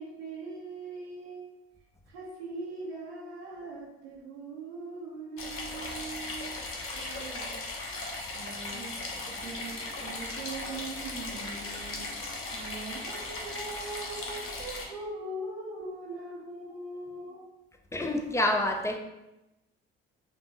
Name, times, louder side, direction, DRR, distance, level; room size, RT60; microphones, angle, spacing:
voice 1, 0.0-1.5 2.1-7.6 8.1-8.9 9.4-17.5, right 2 dB, 85° right, -6 dB, 0.8 m, -41 dB
sound 1, 5.4-14.9, left 2 dB, 45° left, 1.0 m, -37 dB
voice 2, 17.9-19.0, left 1 dB, 10° left, 3 dB, 0.7 m, -27 dB
5.4 x 2.6 x 2.9 m, 0.95 s
hypercardioid pair, 50°, 31 cm